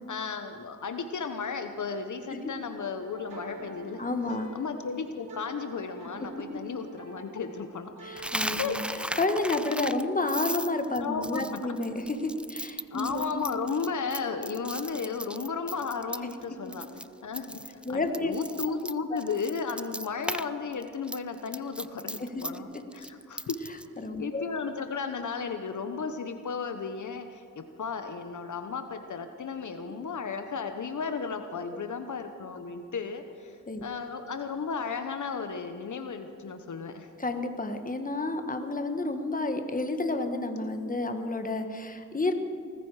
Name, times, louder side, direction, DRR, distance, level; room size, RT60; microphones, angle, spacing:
voice 1, 0.1-4.0 4.5-7.9 8.6-8.8 11.0-11.7 12.9-23.6 24.2-37.1, left 5 dB, 60° left, 7 dB, 1.1 m, -34 dB
sound 1, 3.0-9.1, right 4 dB, 70° right, 2.2 m, -47 dB
voice 2, 4.0-4.5 8.0-8.8 9.2-13.3 17.8-18.4 19.1-19.2 22.3-22.4 24.0-24.4 33.7-33.8 37.2-42.3, left 2 dB, 25° left, 6 dB, 1.5 m, -30 dB
Coin (dropping), 8.2-16.4 16.7-17.0 17.3-20.5 20.7-23.9, right 1 dB, 5° right, 0.4 m, -36 dB
19.0 x 14.5 x 4.9 m, 2.4 s
cardioid pair, 75°, 33 cm